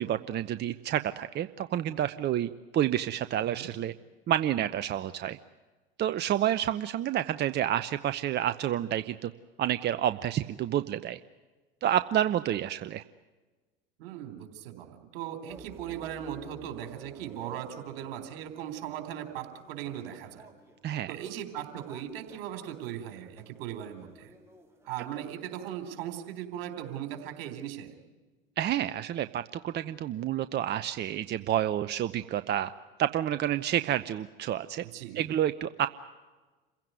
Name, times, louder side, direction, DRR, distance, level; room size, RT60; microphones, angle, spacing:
voice 1, 0.0-3.9 4.3-5.4 6.0-9.3 9.6-11.2 11.8-13.0 20.8-21.1 28.6-32.7 33.0-34.8 35.2-35.9, right 11 dB, 35° right, 12 dB, 0.8 m, -29 dB
voice 2, 14.0-20.5 21.1-24.3 24.8-27.9 34.8-35.3, right 10 dB, 70° right, 8 dB, 3.9 m, -38 dB
sound 1, 15.5-25.3, right 1 dB, 10° right, 4.1 m, -54 dB
27.5 x 16.5 x 9.3 m, 1.3 s
hypercardioid pair, 85°, 30 cm